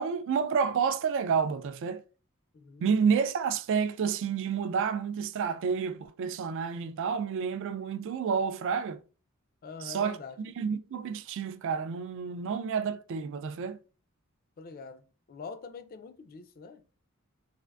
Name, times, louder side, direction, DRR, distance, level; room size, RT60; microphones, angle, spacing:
voice 1, 0.0-2.0 2.8-9.0 9.8-13.8, right 6 dB, 60° right, 0.3 m, -30 dB
voice 2, 2.5-2.9 9.6-10.4 14.6-16.9, left 4 dB, 45° left, 0.4 m, -45 dB
3.4 x 2.5 x 2.3 m
head